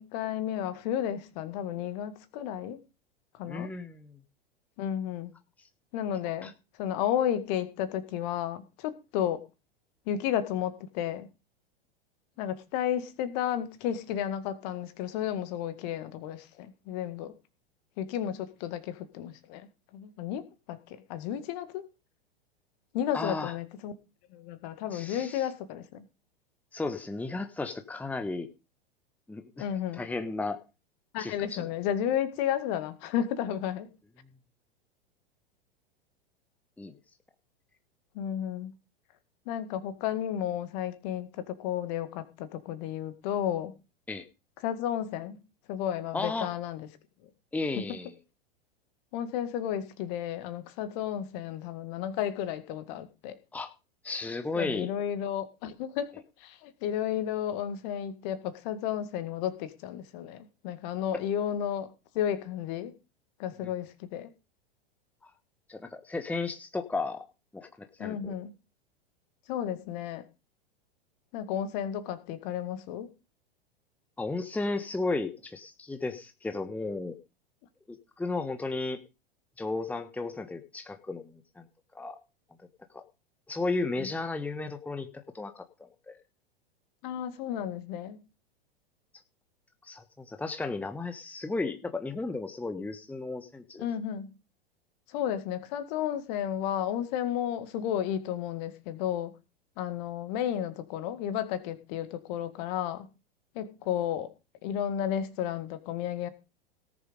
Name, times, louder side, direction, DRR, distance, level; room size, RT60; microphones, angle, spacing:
voice 1, 0.0-2.8 3.3-3.7 4.8-5.3 5.9-6.5 6.8-9.4 10.1-11.3 12.4-17.3 18.0-21.8 22.9-23.9 24.3-26.0 29.6-30.0 31.1-33.9 38.1-38.7 39.5-43.7 44.6-45.4 45.7-46.9 47.2-47.3 47.7-48.0 49.1-53.3 54.6-62.9 63.4-64.3 68.0-68.5 69.5-70.3 71.3-73.1 84.0-84.1 87.0-88.2 93.8-94.3 95.1-99.3 99.8-103.1 103.6-104.3 104.6-106.3, left 10 dB, 45° left, 1.9 m, -32 dB
voice 2, 3.5-4.1 6.4-6.5 23.1-23.5 24.9-25.4 26.7-28.5 29.3-29.6 29.9-30.6 31.2-31.7 36.8-36.9 44.1-44.3 46.1-46.5 47.5-48.1 53.5-53.7 54.0-54.9 63.6-63.7 65.7-67.2 67.5-68.3 74.2-77.2 78.2-79.0 79.6-81.7 81.9-82.2 82.9-83.0 83.5-85.1 85.3-86.2 89.8-93.8, left 3 dB, 5° left, 1.3 m, -34 dB
18.0 x 6.9 x 5.2 m
figure-of-eight pair, 95°, 31 cm